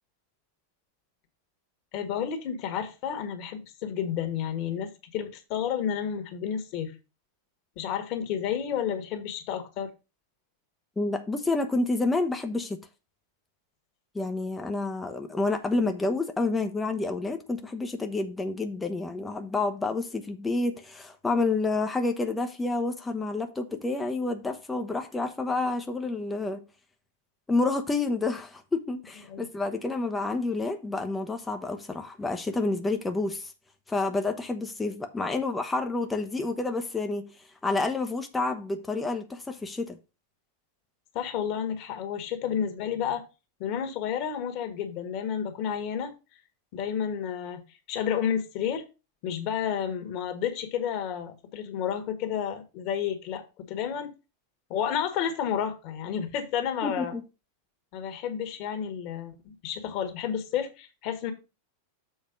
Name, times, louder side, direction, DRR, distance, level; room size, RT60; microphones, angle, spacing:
voice 1, 1.9-6.9 7.7-9.9 29.3-29.5 41.1-43.2 43.6-46.1 46.7-47.6 47.9-48.8 49.2-54.1 54.7-57.1 57.9-61.3, left 8 dB, 40° left, 1.6 m, -31 dB
voice 2, 11.0-12.8 14.1-26.6 27.5-33.5 33.9-37.3 37.6-40.0 56.8-57.2, left 3 dB, 10° left, 0.8 m, -29 dB
7.2 x 4.1 x 5.1 m
figure-of-eight pair, 90°, 0 cm